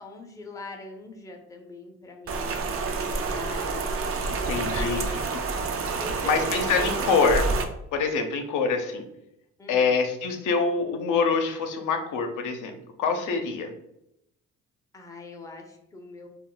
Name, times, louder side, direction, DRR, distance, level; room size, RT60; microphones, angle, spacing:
voice 1, 0.0-3.9 4.7-5.1 6.0-7.2 9.6-9.9 14.9-16.3, left 3 dB, 10° left, 2 dB, 0.5 m, -41 dB
Rain, 2.3-7.6, right 4 dB, 50° right, 0.4 m, -28 dB
voice 2, 4.3-5.0 6.2-7.5 7.9-9.0 9.7-13.7, left 5 dB, 80° left, 6 dB, 0.5 m, -25 dB
2.2 x 2.1 x 3.7 m, 0.80 s
cardioid pair, 90°, 30 cm